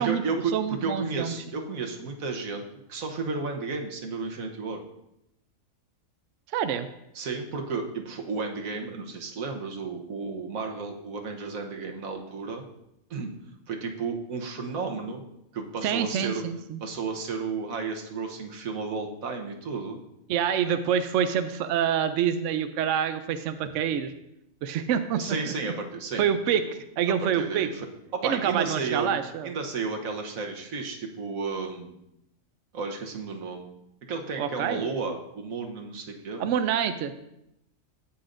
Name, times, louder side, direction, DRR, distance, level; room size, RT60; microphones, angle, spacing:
voice 1, 0.0-2.6 2.9-4.8 7.1-12.6 13.1-13.3 13.7-15.2 15.5-16.4 16.8-20.0 25.2-26.4 27.2-27.9 28.2-29.1 29.4-32.0 32.7-33.7 34.1-36.5, right 4 dB, 85° right, 2 dB, 1.4 m, -33 dB
voice 2, 0.5-1.3 6.5-6.9 15.8-16.8 20.3-24.1 24.6-25.5 26.2-26.6 27.0-27.7 28.2-29.5 34.4-34.8 36.4-37.1, right 8 dB, 70° right, 10 dB, 0.9 m, -26 dB
16.5 x 5.6 x 2.6 m, 0.84 s
omnidirectional pair, 1.4 m